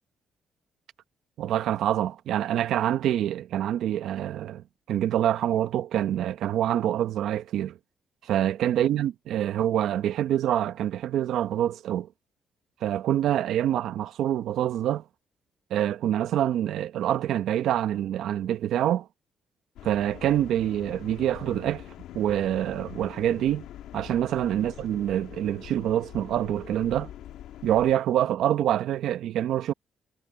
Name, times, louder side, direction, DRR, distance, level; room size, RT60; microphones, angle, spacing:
voice 1, 1.4-7.8 8.3-12.1 12.8-15.0 15.7-19.1 19.8-21.8 22.1-23.7 23.9-27.1 27.6-29.7, right 11 dB, 80° right, 0.9 m, -26 dB
sound 1, 19.8-27.9, left 12 dB, 85° left, 1.4 m, -44 dB
cardioid pair, 90°, 0 cm